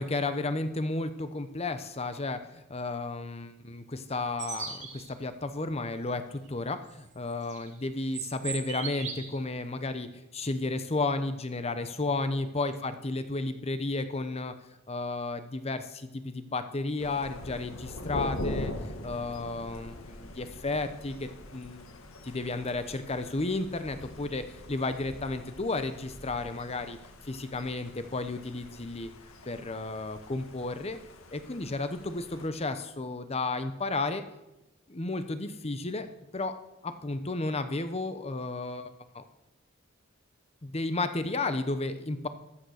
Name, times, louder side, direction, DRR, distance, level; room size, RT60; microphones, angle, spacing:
voice 1, 0.0-14.5 14.9-18.7 19.0-22.0 22.2-27.0 27.2-29.1 29.5-31.0 31.3-34.2 34.9-36.1 36.3-36.5 36.8-38.9 39.1-39.2 40.6-42.3, left 2 dB, 30° left, 10 dB, 0.8 m, -33 dB
sound 1, 4.4-5.1 7.3-7.7 8.1-9.4, right 6 dB, 35° right, 2.5 m, -37 dB
Thunder, 17.0-32.5, left 1 dB, 85° left, 1.8 m, -43 dB
14.5 x 13.0 x 6.4 m, 0.95 s
head